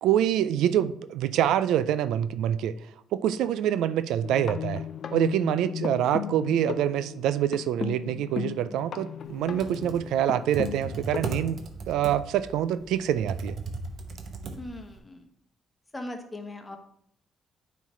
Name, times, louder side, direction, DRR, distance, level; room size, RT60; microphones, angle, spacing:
voice 1, 0.0-2.7 3.1-4.8 5.1-11.6 11.9-13.6, right 10 dB, 85° right, 14 dB, 0.3 m, -26 dB
sound 1, 4.2-11.5, left 8 dB, 60° left, 0.4 m, -36 dB
Computer keyboard, 9.4-15.0, right 3 dB, 60° right, 0.9 m, -37 dB
voice 2, 14.6-15.3 15.9-16.8, left 1 dB, 20° left, 4 dB, 1.0 m, -39 dB
9.0 x 3.2 x 4.3 m, 0.68 s
cardioid pair, 90°, 0 cm